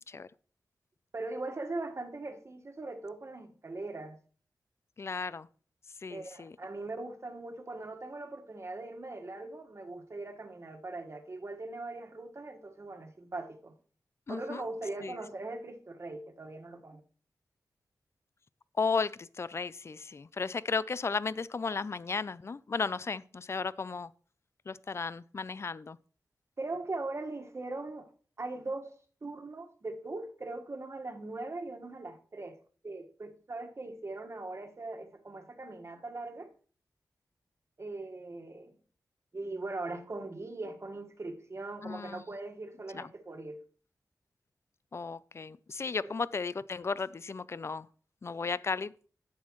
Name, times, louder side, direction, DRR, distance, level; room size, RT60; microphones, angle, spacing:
voice 1, 1.1-4.2 6.1-13.7 14.3-17.0 26.6-28.1 28.4-28.9 29.2-32.6 32.8-36.5 37.8-38.8 39.3-43.6 46.0-46.1, right 2 dB, 45° right, 1.5 m, -40 dB
voice 2, 5.0-5.5 6.0-6.5 14.3-14.7 15.0-15.2 18.7-24.1 24.7-26.0 41.8-42.2 42.9-43.1 44.9-47.9 48.2-48.9, left 4 dB, 40° left, 0.4 m, -34 dB
11.5 x 8.4 x 3.1 m
wide cardioid pair, 80°, 7 cm